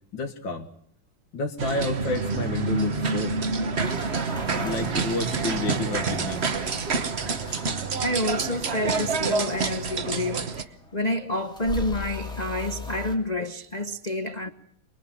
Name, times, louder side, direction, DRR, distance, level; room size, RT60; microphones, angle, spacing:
voice 1, 0.1-0.7 1.3-3.4 4.6-6.4 7.5-7.8 14.5-14.6, left 3 dB, 70° left, 2.5 m, -30 dB
sound 1, 1.6-10.6, right 4 dB, 40° right, 1.1 m, -27 dB
sound 2, 3.8-13.2, left 2 dB, ahead, 2.5 m, -40 dB
sound 3, 4.5-9.6 9.9-10.0, right 8 dB, 65° right, 1.8 m, -40 dB
voice 2, 8.0-14.5, left 1 dB, 35° left, 0.7 m, -29 dB
27.0 x 21.0 x 7.5 m
omnidirectional pair, 2.2 m